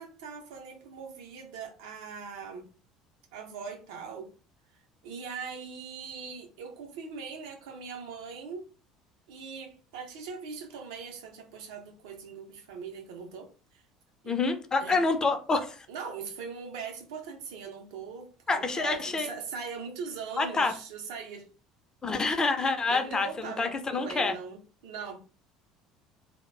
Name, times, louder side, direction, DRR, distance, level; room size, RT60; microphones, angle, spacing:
voice 1, 0.0-2.7 3.3-4.3 5.0-8.7 9.3-13.5 14.2-14.4 14.8-15.0 15.9-21.5 22.6-25.2, right 5 dB, 70° right, 0.6 m, -41 dB
voice 2, 14.3-15.9 18.5-19.3 20.4-20.7 22.0-24.3, left 3 dB, 25° left, 0.5 m, -27 dB
2.2 x 2.1 x 3.1 m
figure-of-eight pair, 65°, 3 cm